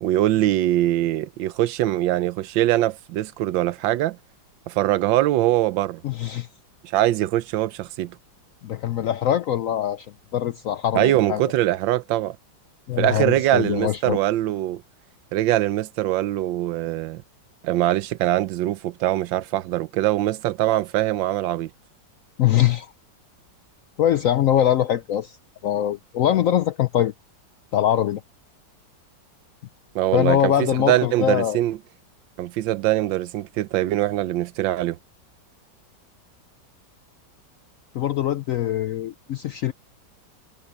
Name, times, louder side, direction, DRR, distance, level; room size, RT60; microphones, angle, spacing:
voice 1, 0.0-4.2 4.7-6.0 6.8-8.2 10.9-12.4 13.0-14.8 15.3-17.2 17.6-21.7 29.9-31.8 32.4-35.0, right 14 dB, 90° right, 1.4 m, -22 dB
voice 2, 6.0-6.5 8.6-10.1 10.3-11.4 12.9-14.2 22.4-22.9 24.0-25.4 25.6-27.1 27.7-28.2 30.1-31.6 37.9-39.7, left 11 dB, 75° left, 0.7 m, -22 dB
omnidirectional pair, 2.0 m